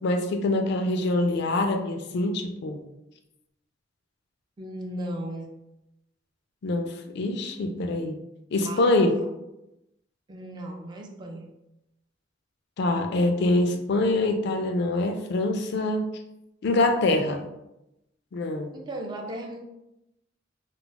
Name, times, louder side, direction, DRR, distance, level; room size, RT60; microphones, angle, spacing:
voice 1, 0.0-2.8 6.6-8.1 8.5-9.1 12.8-16.0 16.6-17.4 18.3-18.7, left 2 dB, 60° left, 5 dB, 0.3 m, -24 dB
voice 2, 4.6-5.5 8.6-9.3 10.3-11.5 18.7-19.6, right 1 dB, 25° right, 2 dB, 0.3 m, -36 dB
2.3 x 2.0 x 3.7 m, 0.90 s
head